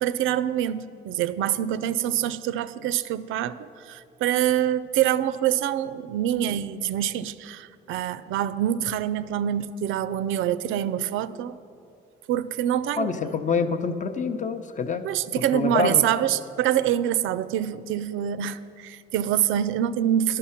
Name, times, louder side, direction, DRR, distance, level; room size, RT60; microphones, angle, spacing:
voice 1, 0.0-11.6 12.3-13.4 15.0-20.4, right 11 dB, 85° right, 15 dB, 0.4 m, -25 dB
voice 2, 13.0-15.1 15.4-16.1, left 5 dB, 40° left, 9 dB, 0.7 m, -26 dB
11.0 x 6.6 x 5.7 m, 2.5 s
cardioid pair, 90°, 20 cm